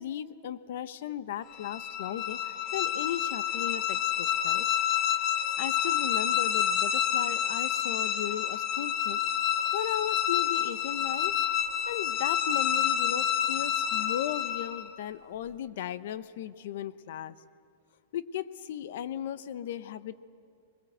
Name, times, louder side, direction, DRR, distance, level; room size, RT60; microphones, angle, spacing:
voice 1, 0.0-4.7 5.6-9.2 9.7-11.4 11.9-17.3 18.1-20.2, left 10 dB, 60° left, 15 dB, 0.8 m, -36 dB
sound 1, 1.5-14.9, left 10 dB, 30° left, 1.1 m, -29 dB
21.5 x 21.0 x 8.0 m, 2.3 s
supercardioid pair, 160°, 0 cm